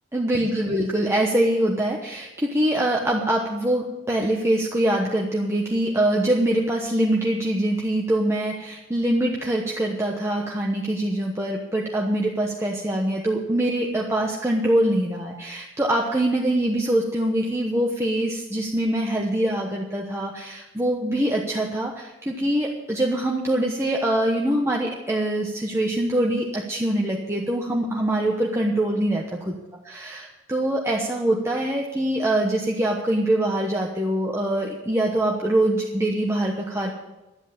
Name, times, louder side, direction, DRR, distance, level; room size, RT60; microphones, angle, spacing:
voice 1, 0.1-29.5 29.9-36.9, right 1 dB, 15° right, -1 dB, 1.1 m, -24 dB
12.0 x 8.2 x 8.5 m, 1.0 s
head